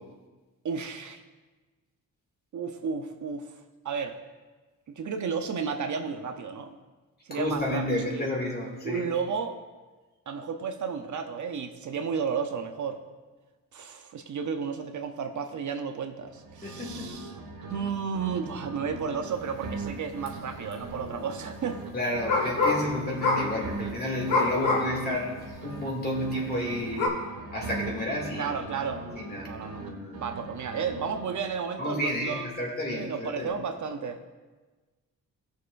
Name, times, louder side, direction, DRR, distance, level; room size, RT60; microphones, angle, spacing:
voice 1, 0.6-1.2 2.5-3.5 3.8-4.2 4.9-6.7 7.3-7.8 8.1-8.2 8.8-9.6 10.3-13.0 13.7-17.3 17.7-21.8 28.4-29.1 29.4-29.8 30.2-32.5 32.9-34.3, right 6 dB, 55° right, 6 dB, 0.7 m, -32 dB
voice 2, 7.3-9.1 16.6-17.2 21.9-25.3 25.6-27.1 27.5-28.5 29.2-30.2 31.8-33.5, left 1 dB, 25° left, -1 dB, 2.4 m, -31 dB
sound 1, 16.3-17.9 18.1-21.9 22.1-25.9 26.1-29.9 30.1-31.6, right 3 dB, 85° right, 1.5 m, -40 dB
sound 2, 20.3-20.4 20.7-21.1 22.3-22.9 23.2-23.6 24.3-25.0 25.5-25.6 27.0-27.1, left 3 dB, 65° left, 2.0 m, -25 dB
17.5 x 6.5 x 2.6 m, 1.3 s
cardioid pair, 100°, 35 cm